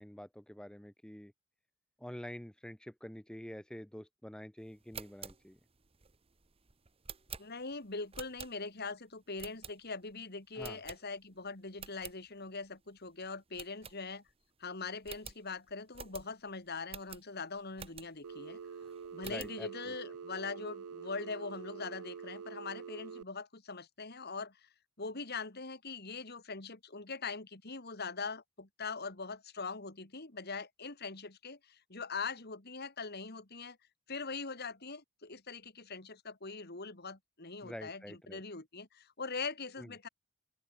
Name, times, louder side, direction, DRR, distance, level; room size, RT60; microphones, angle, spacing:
voice 1, 0.0-1.3 2.0-5.6 10.5-10.8 19.2-19.9 37.6-38.4 39.8-39.9, equal, 5° left, 0.6 m, -47 dB
sound 1, 4.7-8.9 9.4-10.1 10.6-11.4 11.7-12.2 12.6-12.7 13.0-13.1 13.5-14.4 14.7-14.8 15.0-18.3 18.8-19.6, right 7 dB, 25° right, 1.1 m, -49 dB
voice 2, 7.4-14.2 14.6-18.6 19.1-24.7 25.0-33.8 34.1-40.1, left 4 dB, 45° left, 2.4 m, -42 dB
Telephone, 18.2-23.2, right 6 dB, 85° right, 0.5 m, -46 dB
open air
head